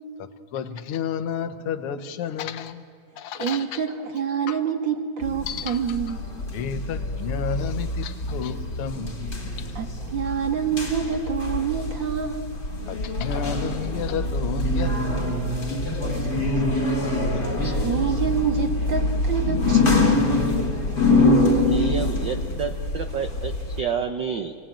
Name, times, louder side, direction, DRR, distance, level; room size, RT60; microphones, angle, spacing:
voice 1, 0.2-2.9 3.2-3.8 4.5-4.6 5.5-6.0 6.5-9.3 9.6-9.7 12.9-15.8, left 7 dB, 60° left, 9 dB, 1.6 m, -32 dB
voice 2, 3.4-6.2 9.8-12.5 16.2-16.5 17.7-20.7, right 7 dB, 45° right, 4 dB, 1.9 m, -27 dB
sound 1, 5.2-23.8, left 2 dB, 35° left, 3.6 m, -25 dB
voice 3, 21.6-24.6, right 6 dB, 85° right, 6 dB, 1.0 m, -29 dB
26.0 x 20.5 x 8.8 m, 2.1 s
omnidirectional pair, 3.4 m